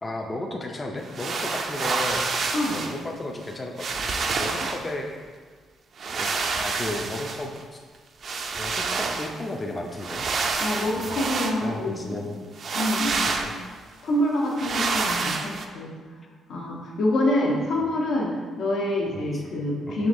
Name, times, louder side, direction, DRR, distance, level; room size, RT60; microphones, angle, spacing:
voice 1, 0.0-4.1 4.4-5.1 6.2-6.3 6.6-7.8 8.6-10.3 10.7-11.3 11.6-12.4 13.2-13.5 17.8-17.9 19.1-19.4 19.9-20.1, left 2 dB, 25° left, 1 dB, 0.4 m, -34 dB
sound 1, 1.0-3.0 3.5-3.6 3.8-4.9 6.0-7.6 8.2-9.4 10.0-11.6 12.6-13.6 14.6-15.6, right 4 dB, 55° right, 0.4 m, -28 dB
voice 2, 2.5-2.9 10.6-12.2 12.7-13.2 14.0-15.9 16.5-20.1, left 1 dB, 75° left, -2 dB, 0.8 m, -26 dB
4.8 x 3.2 x 2.6 m, 1.5 s
cardioid pair, 90°, 0 cm